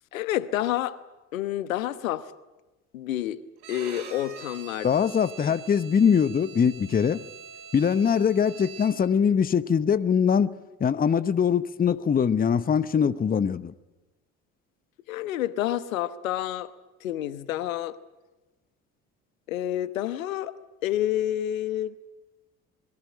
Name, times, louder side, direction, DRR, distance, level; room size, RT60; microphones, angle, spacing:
voice 1, 0.1-1.0 1.3-2.3 2.9-3.4 3.7-4.9 5.4-5.6 15.1-16.7 17.0-18.0 19.5-20.5 20.8-22.0, left 12 dB, 70° left, 1.2 m, -29 dB
Bowed string instrument, 3.6-9.2, right 6 dB, 65° right, 6.1 m, -44 dB
voice 2, 4.8-7.2 7.7-10.5 10.8-13.7, left 7 dB, 20° left, 0.9 m, -22 dB
27.5 x 22.0 x 8.8 m
figure-of-eight pair, 55°, 42 cm